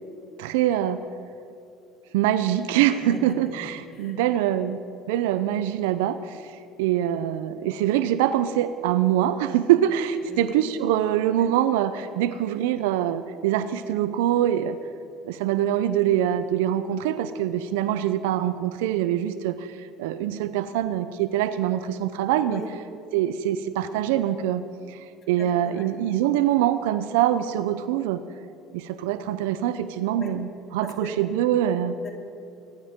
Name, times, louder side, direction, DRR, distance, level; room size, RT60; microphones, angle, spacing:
voice 1, 0.4-1.0 2.1-4.8 5.1-6.4 6.8-14.8 15.2-22.6 23.1-24.6 24.9-25.0 25.3-28.2 28.7-31.9, right 11 dB, 85° right, 13 dB, 0.6 m, -24 dB
voice 2, 3.0-4.2 10.2-10.4 22.5-22.7 25.4-26.0 30.2-30.3 30.8-31.1 32.0-32.1, left 2 dB, 45° left, 0 dB, 3.3 m, -39 dB
27.0 x 12.0 x 3.7 m, 2.7 s
supercardioid pair, 80°, 0 cm